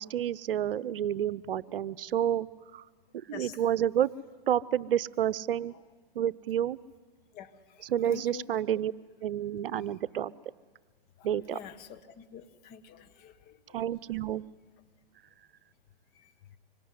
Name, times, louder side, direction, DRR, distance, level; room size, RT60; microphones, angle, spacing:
voice 1, 0.0-2.5 2.7-2.8 3.3-4.1 4.5-5.7 6.2-6.8 7.8-8.9 9.2-10.3 11.2-11.6 13.7-14.4, right 10 dB, 70° right, 18 dB, 0.8 m, -29 dB
voice 2, 7.3-8.5 9.7-9.8 11.2-13.8 16.1-16.3, left 8 dB, 30° left, 8 dB, 1.7 m, -47 dB
25.0 x 24.5 x 9.6 m, 1.3 s
hypercardioid pair, 130°, 29 cm